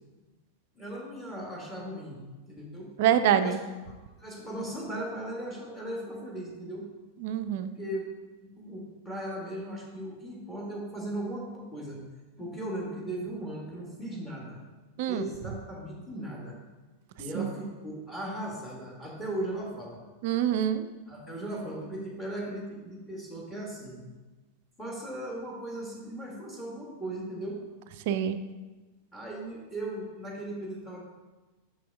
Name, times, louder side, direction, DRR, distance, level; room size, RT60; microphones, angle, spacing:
voice 1, 0.7-2.2 2.5-2.9 3.3-6.9 7.7-8.1 8.4-12.0 12.4-14.6 15.1-16.6 17.2-20.0 21.1-24.0 24.8-27.6 29.1-31.0, right 1 dB, 10° left, -3 dB, 1.7 m, -37 dB
voice 2, 3.0-3.6 7.2-7.7 15.0-15.2 17.4-17.5 20.2-20.8 28.1-28.4, right 10 dB, 50° right, 10 dB, 0.3 m, -25 dB
6.1 x 5.9 x 3.5 m, 1.2 s
figure-of-eight pair, 90°, 0 cm